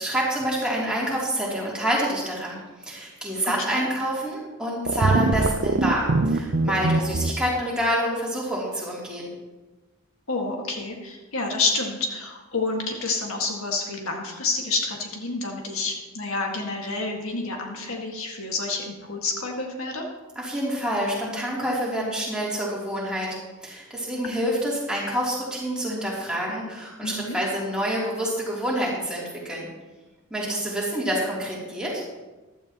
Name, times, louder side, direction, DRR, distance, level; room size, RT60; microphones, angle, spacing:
voice 1, 0.0-9.3 20.3-23.3 23.6-29.7 30.3-32.0, equal, 5° right, -6 dB, 3.1 m, -27 dB
voice 2, 3.4-3.8 10.3-20.0 27.0-27.4, left 3 dB, 70° left, 0 dB, 1.9 m, -29 dB
sound 1, 4.9-7.3, right 2 dB, 50° right, 0.6 m, -23 dB
15.0 x 12.5 x 3.0 m, 1.2 s
head